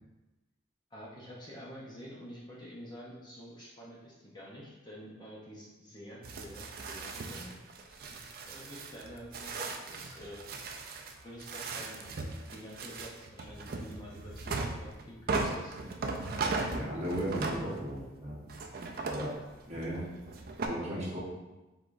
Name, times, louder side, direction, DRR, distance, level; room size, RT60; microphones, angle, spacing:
voice 1, 0.9-7.6 7.9-8.0 8.4-10.4 11.2-12.1 12.3-16.0 19.1-19.3, equal, 20° left, -5 dB, 0.7 m, -48 dB
sound 1, 6.2-18.1 18.5-20.7, right 3 dB, 50° right, 0.4 m, -38 dB
voice 2, 16.7-18.4 19.1-19.3 19.6-20.0 20.7-21.2, right 1 dB, 35° right, -6 dB, 1.1 m, -35 dB
4.8 x 3.7 x 2.5 m, 1.1 s
head